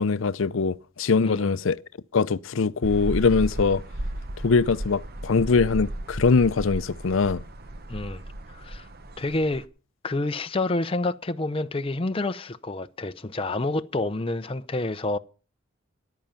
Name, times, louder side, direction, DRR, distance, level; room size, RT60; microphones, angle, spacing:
voice 1, 0.0-1.8 2.1-3.8 4.4-7.4, left 4 dB, 70° left, 0.5 m, -22 dB
voice 2, 1.2-1.5 7.9-8.2 8.5-8.9 9.2-9.7 10.0-15.2, left 2 dB, 25° left, 0.6 m, -28 dB
sound 1, 2.8-9.6, right 1 dB, 50° right, 0.9 m, -35 dB
14.0 x 10.5 x 5.7 m
head